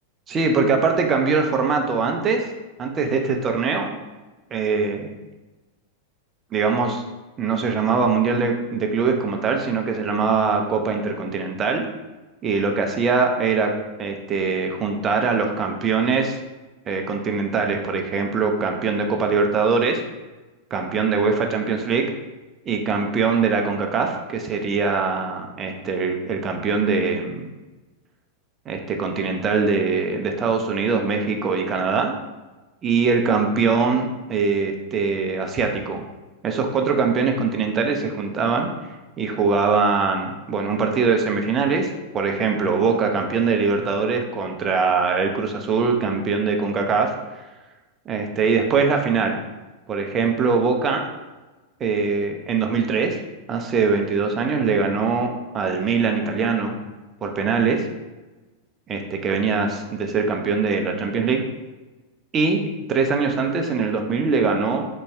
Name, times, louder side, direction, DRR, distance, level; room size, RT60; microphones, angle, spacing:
voice 1, 0.3-2.5 2.8-4.0 4.5-5.2 6.5-7.0 7.4-11.8 12.4-13.7 14.0-16.4 16.9-20.0 20.7-22.1 22.7-27.5 28.7-32.1 32.8-36.0 36.4-38.7 39.2-47.1 48.1-49.4 49.9-51.0 51.8-53.2 53.5-56.8 57.2-57.8 58.9-61.4 62.3-62.6 62.9-64.9, right 4 dB, 25° right, 3 dB, 0.6 m, -22 dB
4.1 x 3.1 x 3.4 m, 1.2 s
figure-of-eight pair, 90°, 0 cm